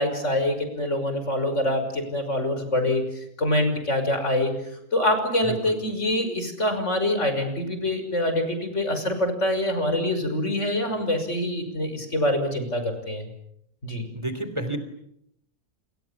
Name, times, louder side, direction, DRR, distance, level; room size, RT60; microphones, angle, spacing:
voice 1, 0.0-3.0 3.4-4.5 4.9-13.3 13.8-14.1, left 1 dB, 50° left, 7 dB, 6.3 m, -25 dB
voice 2, 5.4-5.8 14.1-14.8, right 1 dB, 20° right, 10 dB, 3.2 m, -30 dB
30.0 x 27.5 x 7.2 m, 0.77 s
omnidirectional pair, 1.6 m